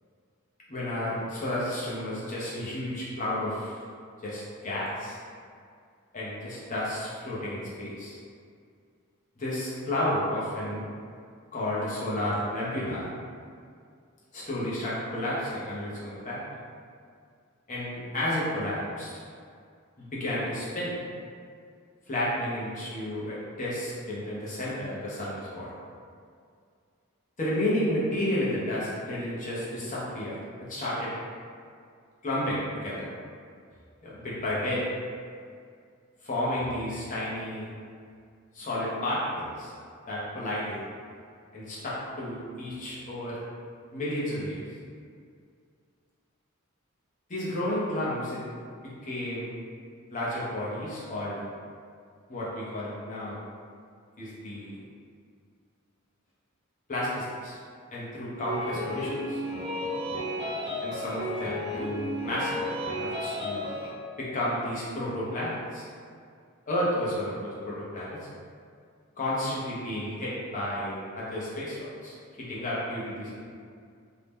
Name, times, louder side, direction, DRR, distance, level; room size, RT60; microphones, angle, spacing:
voice 1, 0.7-3.8 4.2-5.2 6.1-8.2 9.4-10.9 11.5-13.1 14.3-16.4 17.7-19.1 20.0-20.9 22.1-25.7 27.4-30.4 30.7-31.1 32.2-33.1 34.0-34.9 36.2-37.7 38.5-39.7 40.1-40.8 41.5-43.4 43.9-44.6 47.3-48.4 48.8-49.5 50.1-51.4 52.3-53.4 54.2-54.8 56.9-57.6 57.9-59.4 60.8-63.7 64.2-65.9 66.7-68.2 69.2-73.4, left 1 dB, 35° left, -7 dB, 0.7 m, -32 dB
sound 1, 58.4-63.9, left 1 dB, 25° right, 0.5 m, -33 dB
2.7 x 2.1 x 3.3 m, 2.2 s
head